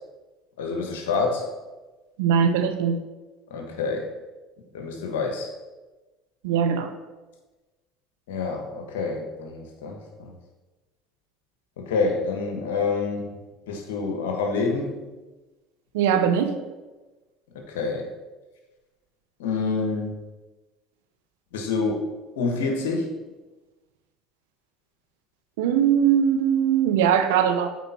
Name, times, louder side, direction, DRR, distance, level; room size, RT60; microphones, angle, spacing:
voice 1, 0.6-1.5 3.5-4.1 4.7-5.5 8.3-10.3 11.8-13.4 13.7-15.0 17.7-18.1 19.4-20.2 21.5-22.0 22.3-23.1, left 4 dB, 85° left, 2 dB, 1.3 m, -27 dB
voice 2, 2.2-3.0 6.4-6.9 15.9-16.5 25.6-27.7, right 8 dB, 85° right, 7 dB, 0.7 m, -21 dB
8.4 x 4.5 x 4.3 m, 1.2 s
hypercardioid pair, 80°, 0 cm